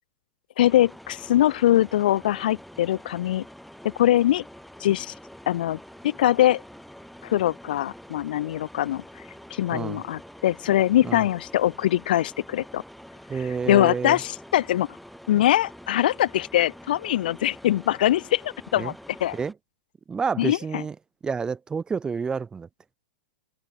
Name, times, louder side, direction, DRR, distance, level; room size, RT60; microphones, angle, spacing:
voice 1, 0.6-3.4 3.8-4.4 4.8-5.1 5.5-6.6 7.2-9.0 9.5-12.8 13.4-14.9 15.3-18.9 19.2-19.4 20.4-20.8, left 13 dB, 70° left, 1.0 m, -22 dB
sound 1, 0.7-19.5, equal, ahead, 6.3 m, -46 dB
voice 2, 9.7-10.0 11.0-11.2 13.3-14.2 18.8-18.9 19.3-19.5 20.1-21.0 21.2-22.7, right 5 dB, 15° right, 3.8 m, -29 dB
hypercardioid pair, 125°, 5 cm